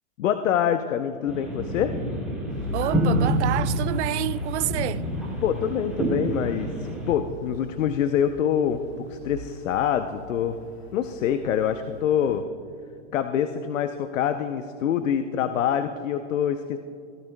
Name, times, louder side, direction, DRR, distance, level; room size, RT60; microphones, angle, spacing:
voice 1, 0.2-2.0 5.4-10.6 10.9-12.5 13.1-16.8, left 9 dB, 80° left, 0.7 m, -25 dB
sound 1, 1.3-7.1, equal, ahead, 2.3 m, -28 dB
sound 2, 2.5-12.4, left 1 dB, 55° left, 2.1 m, -38 dB
voice 2, 2.7-5.0, right 14 dB, 65° right, 0.5 m, -28 dB
sound 3, 2.8-4.3, right 4 dB, 20° right, 1.4 m, -31 dB
17.0 x 13.0 x 2.2 m
supercardioid pair, 155°, 38 cm